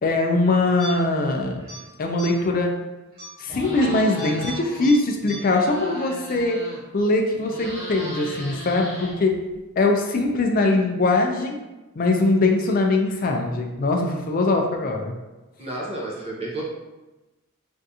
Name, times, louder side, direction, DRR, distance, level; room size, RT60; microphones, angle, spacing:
voice 1, 0.0-1.7 2.0-2.7 3.4-6.6 6.9-9.3 9.8-11.6 12.0-15.1, left 2 dB, 40° left, 3 dB, 0.4 m, -21 dB
sound 1, 0.8-1.3 1.6-1.8 2.2-2.5 3.1-4.5 4.8-4.9 5.3-5.4, right 1 dB, 60° right, 1.2 m, -38 dB
sound 2, 3.5-4.9 5.2-7.0 7.3-9.6, equal, 10° left, 1.1 m, -36 dB
voice 2, 15.6-16.6, right 2 dB, 30° right, -4 dB, 0.6 m, -31 dB
3.5 x 2.5 x 2.7 m, 1.1 s
head